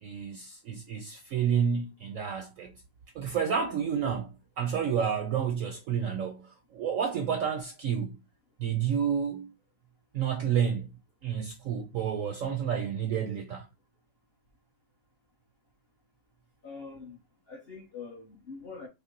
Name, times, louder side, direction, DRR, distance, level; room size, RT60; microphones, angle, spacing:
voice 1, 0.0-2.7 3.1-8.2 8.6-9.5 10.1-10.9 11.2-13.7, right 7 dB, 70° right, 0.8 m, -30 dB
voice 2, 16.6-17.2 17.5-18.9, left 4 dB, 50° left, 0.7 m, -44 dB
5.8 x 2.0 x 3.7 m
omnidirectional pair, 1.9 m